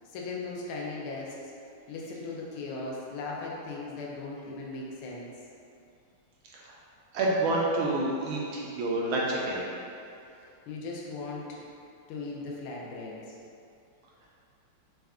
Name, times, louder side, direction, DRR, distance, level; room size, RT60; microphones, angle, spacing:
voice 1, 0.1-1.5 1.9-5.3 10.7-11.6 12.1-13.3, left 3 dB, 80° left, -3 dB, 1.5 m, -38 dB
voice 2, 7.1-9.6, right 2 dB, 75° right, -4 dB, 1.3 m, -28 dB
4.3 x 2.4 x 3.4 m, 2.6 s
omnidirectional pair, 2.4 m